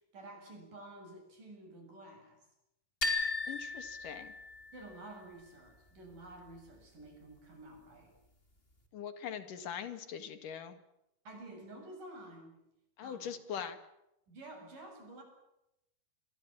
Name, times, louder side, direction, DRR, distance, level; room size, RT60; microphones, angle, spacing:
voice 1, 0.1-2.4 4.7-8.1 11.3-12.6 13.0-13.3 14.3-15.2, right 2 dB, 65° right, 4 dB, 9.0 m, -51 dB
sound 1, 3.0-4.9, left 3 dB, 15° left, 3.2 m, -36 dB
voice 2, 3.5-4.3 8.9-10.8 13.0-13.8, left 8 dB, 70° left, 10 dB, 3.3 m, -42 dB
28.0 x 22.5 x 7.5 m, 0.86 s
omnidirectional pair, 4.0 m